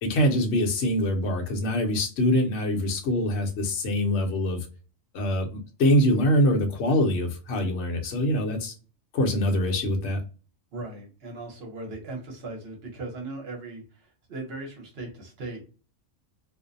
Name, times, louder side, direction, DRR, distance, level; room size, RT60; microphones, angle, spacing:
voice 1, 0.0-4.7 5.1-8.7 9.1-10.2, equal, 65° left, 2 dB, 0.9 m, -24 dB
voice 2, 10.7-15.6, right 2 dB, 55° right, 2 dB, 1.0 m, -38 dB
2.5 x 2.0 x 2.6 m, 0.37 s
omnidirectional pair, 1.4 m